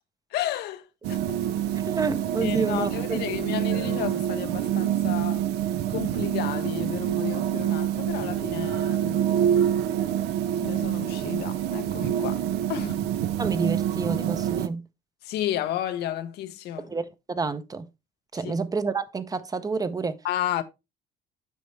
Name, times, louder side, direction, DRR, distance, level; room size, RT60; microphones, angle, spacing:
voice 1, 0.3-0.8 1.1-1.4 2.4-5.5 5.9-9.6 10.6-12.4 12.7-13.0 15.2-16.9 18.3-18.5 20.2-20.6, left 12 dB, 75° left, 0.7 m, -32 dB
sound 1, 1.0-14.7, right 10 dB, 80° right, 0.6 m, -26 dB
voice 2, 1.9-3.2 13.4-14.8 16.8-17.9 18.3-20.1, right 4 dB, 20° right, 0.6 m, -29 dB
8.0 x 5.2 x 3.2 m
cardioid pair, 110°, 17 cm